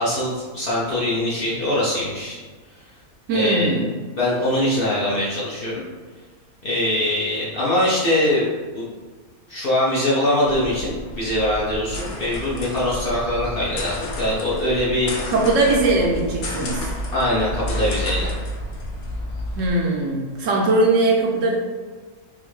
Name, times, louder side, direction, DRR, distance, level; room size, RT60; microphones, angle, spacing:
voice 1, 0.0-2.4 3.3-3.7 4.2-5.8 6.6-8.9 9.5-15.1 17.1-18.3, left 1 dB, 55° left, -7 dB, 0.7 m, -22 dB
voice 2, 3.3-3.9 15.3-16.9 19.6-21.6, right 2 dB, 70° right, -1 dB, 0.9 m, -20 dB
sound 1, 10.4-19.7, equal, 85° left, 1.1 m, -30 dB
3.5 x 2.6 x 3.1 m, 1.4 s
omnidirectional pair, 1.5 m